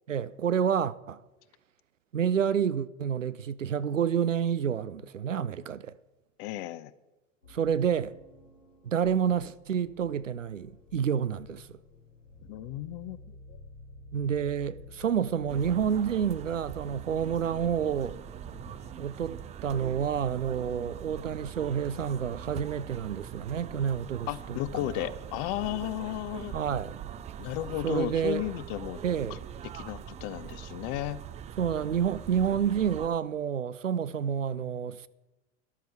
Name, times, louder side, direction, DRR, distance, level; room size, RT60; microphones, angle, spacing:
voice 1, 0.1-1.2 2.1-6.0 7.5-8.2 8.8-11.8 14.1-18.2 19.0-25.1 26.5-27.0 27.8-28.4 29.0-29.4 31.6-35.1, right 8 dB, 90° right, 0.5 m, -29 dB
voice 2, 6.4-6.9 12.5-13.4 24.3-26.6 27.4-29.0 29.7-31.2, left 15 dB, 50° left, 0.8 m, -34 dB
sound 1, 7.4-19.7, left 2 dB, 90° left, 4.9 m, -52 dB
sound 2, 15.5-33.1, right 9 dB, 20° right, 0.4 m, -42 dB
13.0 x 12.0 x 4.7 m
figure-of-eight pair, 80°, 37 cm